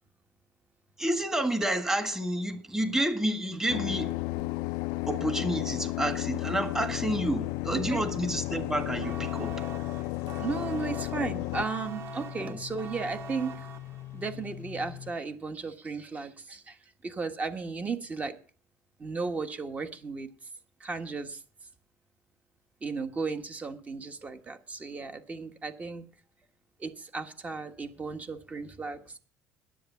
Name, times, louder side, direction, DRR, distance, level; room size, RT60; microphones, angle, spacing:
voice 1, 1.0-4.2 5.1-9.6 12.4-12.6, right 1 dB, 10° right, 1.7 m, -29 dB
sound 1, 3.7-11.7, left 20 dB, 85° left, 0.4 m, -33 dB
sound 2, 6.9-15.1, left 15 dB, 50° left, 0.7 m, -44 dB
sound 3, 9.0-14.3, right 5 dB, 50° right, 1.2 m, -44 dB
voice 2, 10.4-13.7 14.1-16.8 17.0-18.3 19.0-20.3 20.8-21.4 22.8-26.0 26.8-29.2, right 4 dB, 25° right, 1.4 m, -35 dB
10.0 x 8.1 x 7.0 m
cardioid pair, 120°, 6 cm